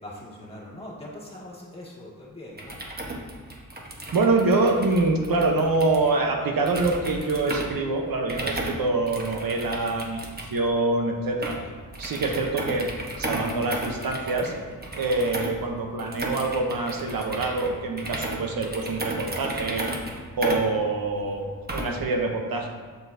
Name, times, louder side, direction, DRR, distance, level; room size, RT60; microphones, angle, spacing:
voice 1, 0.0-2.8, left 1 dB, 15° left, -5 dB, 2.1 m, -41 dB
sound 1, 2.5-22.1, right 1 dB, 25° right, 1.2 m, -35 dB
voice 2, 4.1-11.6 12.0-12.9 13.2-14.5 14.9-19.9 20.4-21.4 21.7-22.7, right 3 dB, 75° right, 2 dB, 1.0 m, -25 dB
7.6 x 7.1 x 2.7 m, 1.5 s
cardioid pair, 90°, 35 cm